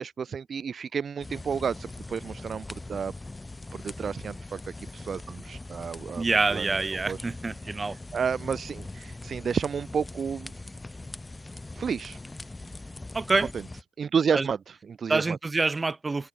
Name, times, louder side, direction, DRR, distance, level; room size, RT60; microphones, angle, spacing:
voice 1, 0.0-3.1 3.7-4.6 4.9-6.2 6.5-6.8 7.1-7.2 7.6-7.7 8.1-10.5 11.7-12.2 14.0-15.4, right 6 dB, 45° right, 0.9 m, -31 dB
sound 1, 1.2-13.8, left 2 dB, 15° left, 2.1 m, -41 dB
voice 2, 6.2-8.0 13.1-13.5 14.3-14.5 15.1-16.3, right 3 dB, 25° right, 1.2 m, -26 dB
hypercardioid pair, 60°, 0 cm